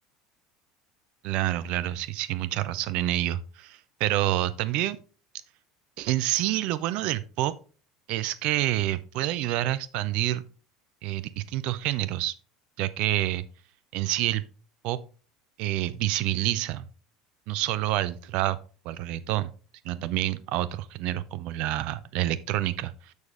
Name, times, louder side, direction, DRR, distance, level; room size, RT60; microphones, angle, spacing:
voice 1, 1.2-5.0 6.0-7.5 8.1-10.4 11.0-12.3 12.8-13.4 13.9-14.4 14.8-15.0 15.6-16.9 17.5-18.6 18.8-19.5 19.8-23.1, right 15 dB, 50° right, 0.4 m, -28 dB
6.8 x 6.2 x 3.4 m
figure-of-eight pair, 70°, 2 cm